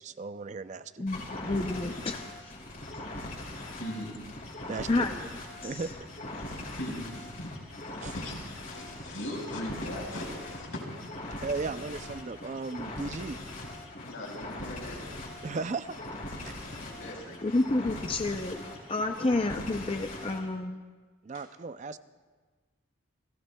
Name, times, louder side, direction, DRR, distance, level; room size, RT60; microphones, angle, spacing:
voice 1, 0.0-1.0 4.7-5.1 5.6-5.9 8.0-8.1 11.4-13.4 15.4-16.5 21.2-22.0, right 4 dB, 35° right, 12 dB, 0.4 m, -36 dB
voice 2, 1.0-2.5 4.9-5.2 5.6-5.8 17.4-18.6 18.9-20.8, left 2 dB, 30° left, 5 dB, 0.5 m, -30 dB
sound 1, 1.1-20.4, left 1 dB, 50° left, 4.2 m, -41 dB
voice 3, 3.7-4.1 4.6-4.8 6.3-10.8 14.0-15.0 15.3-15.6 16.8-17.4 21.3-21.4, left 1 dB, 85° left, -1 dB, 4.6 m, -40 dB
30.0 x 18.5 x 2.3 m, 1.4 s
head